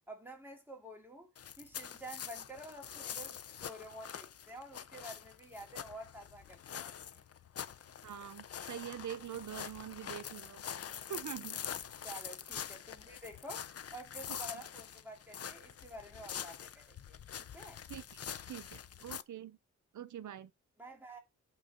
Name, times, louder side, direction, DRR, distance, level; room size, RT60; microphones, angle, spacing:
voice 1, 0.1-1.3 1.6-7.3 12.0-17.8 20.8-21.2, right 1 dB, 5° right, 2.4 m, -50 dB
sound 1, 1.4-19.2, left 8 dB, 55° left, 0.6 m, -45 dB
voice 2, 8.0-10.6 11.1-11.6 17.9-18.0 18.5-19.6 19.9-20.5, right 10 dB, 80° right, 0.7 m, -44 dB
8.5 x 3.9 x 6.6 m
wide cardioid pair, 150°, 30 cm